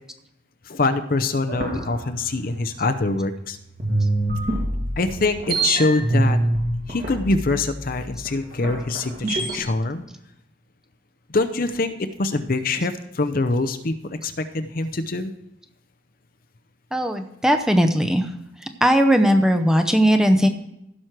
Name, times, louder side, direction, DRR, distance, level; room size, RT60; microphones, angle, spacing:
voice 1, 0.7-3.6 5.0-6.4 6.9-10.0 11.3-11.9 12.2-15.3, left 3 dB, 45° left, 10 dB, 0.6 m, -24 dB
sound 1, 1.5-3.4 3.8-9.6, right 2 dB, 50° right, 2.4 m, -25 dB
voice 2, 16.9-18.3 18.8-20.5, equal, 5° right, 6 dB, 0.6 m, -18 dB
15.5 x 6.3 x 4.6 m, 0.84 s
head